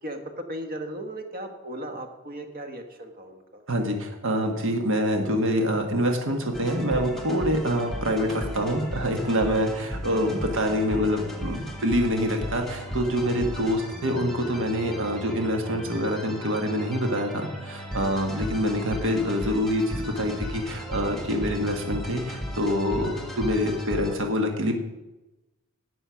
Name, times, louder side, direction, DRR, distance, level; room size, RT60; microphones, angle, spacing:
voice 1, 0.0-3.6 23.0-23.1, right 1 dB, 40° right, 6 dB, 1.5 m, -37 dB
voice 2, 3.7-24.7, equal, 65° right, 4 dB, 1.6 m, -26 dB
sound 1, 6.5-24.2, equal, ahead, 1.6 m, -36 dB
11.0 x 7.8 x 5.8 m, 1.0 s
head